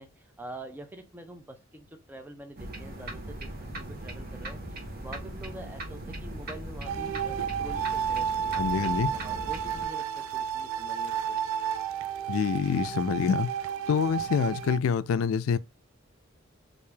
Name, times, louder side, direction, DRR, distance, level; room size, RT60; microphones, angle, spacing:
voice 1, 0.0-3.5 3.8-4.6 5.0-11.4, right 1 dB, 10° right, 0.5 m, -45 dB
sound 1, 2.6-9.9, right 1 dB, 50° right, 0.8 m, -39 dB
sound 2, 6.9-14.8, right 8 dB, 85° right, 0.3 m, -32 dB
voice 2, 8.6-9.1 12.3-13.5 13.9-15.6, left 6 dB, 85° left, 0.3 m, -26 dB
3.3 x 2.6 x 3.2 m
head